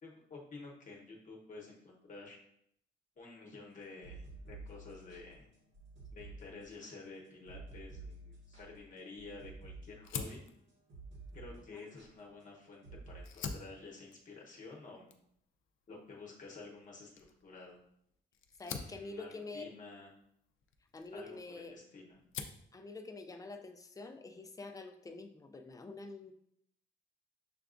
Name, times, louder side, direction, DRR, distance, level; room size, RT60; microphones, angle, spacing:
voice 1, 0.0-2.4 3.2-5.5 6.1-10.5 11.3-15.1 15.9-17.1 17.4-17.8 18.6-20.1 21.1-22.2, left 3 dB, 40° left, -2 dB, 0.9 m, -51 dB
sound 1, 3.8-11.5 11.8-12.1 12.8-13.2, right 3 dB, 75° right, 1.4 m, -51 dB
Fire, 10.0-12.7 13.1-21.8 22.1-22.7, left 6 dB, 85° left, 0.4 m, -47 dB
voice 2, 18.6-19.7 20.9-21.8 22.7-26.3, left 3 dB, 15° left, 6 dB, 0.3 m, -47 dB
6.7 x 2.3 x 2.5 m, 0.71 s
cardioid pair, 135°, 20 cm